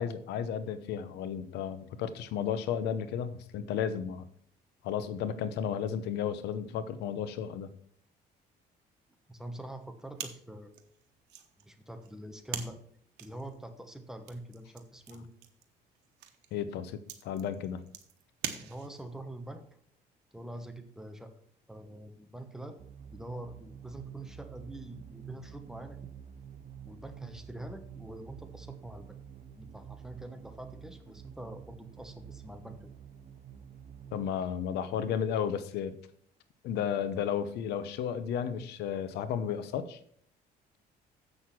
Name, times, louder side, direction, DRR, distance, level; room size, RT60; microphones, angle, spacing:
voice 1, 0.0-4.3 4.8-7.7 16.5-17.9 34.1-36.0 36.6-40.0, left 8 dB, 80° left, 13 dB, 0.8 m, -33 dB
voice 2, 9.3-10.9 11.6-12.8 13.2-15.3 18.6-19.6 20.3-21.3 21.7-22.8 23.1-26.1 26.8-29.2 29.6-32.9, right 1 dB, 5° right, 7 dB, 1.1 m, -45 dB
sound 1, 10.1-19.2, right 10 dB, 85° right, 1.2 m, -45 dB
sound 2, 22.8-34.3, right 8 dB, 40° right, 0.6 m, -49 dB
7.8 x 6.3 x 6.0 m, 0.63 s
cardioid pair, 110°, 17 cm